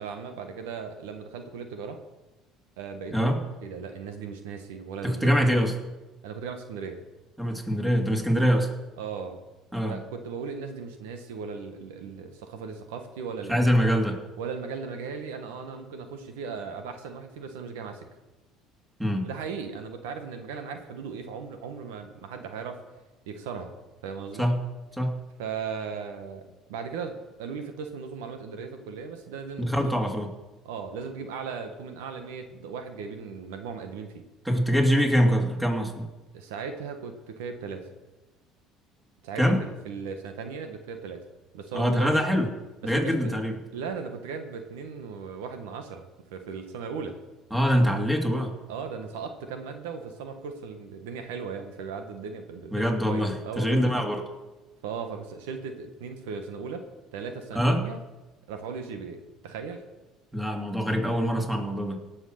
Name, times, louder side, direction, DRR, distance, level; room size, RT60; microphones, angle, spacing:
voice 1, 0.0-2.0 2.8-5.6 6.2-7.0 9.0-9.4 9.8-13.6 14.4-18.1 19.2-22.8 23.3-23.7 24.0-24.4 25.4-30.0 30.6-34.2 36.3-37.9 39.2-41.2 41.5-42.2 42.8-43.3 43.7-46.0 46.3-47.2 48.7-53.9 54.8-56.8 57.1-58.0 58.5-59.8, right 5 dB, 85° right, 7 dB, 1.3 m, -37 dB
voice 2, 5.0-5.8 7.4-8.7 9.7-10.0 13.5-14.2 19.0-19.3 24.4-24.6 25.0-25.2 29.6-30.3 34.4-36.1 39.4-39.6 41.7-42.5 42.8-43.6 47.5-48.6 52.7-54.3 57.5-57.8 60.3-62.0, equal, 5° right, 2 dB, 2.7 m, -24 dB
17.5 x 6.4 x 6.6 m, 1.1 s
supercardioid pair, 80°, 0 cm